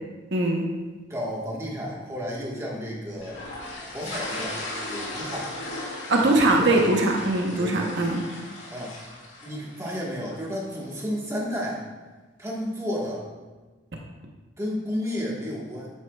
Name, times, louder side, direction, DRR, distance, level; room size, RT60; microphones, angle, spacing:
voice 1, 0.3-0.7 6.1-8.2, right 2 dB, 60° right, 0 dB, 0.9 m, -21 dB
voice 2, 1.1-3.4 3.9-4.6 4.9-5.5 6.2-6.3 6.6-6.8 7.5-7.9 8.7-8.9 9.4-11.8 12.4-13.3 14.6-15.9, equal, 15° right, -4 dB, 1.4 m, -32 dB
sound 1, 3.2-10.5, left 2 dB, 65° left, 2.2 m, -37 dB
9.5 x 8.4 x 2.3 m, 1.3 s
head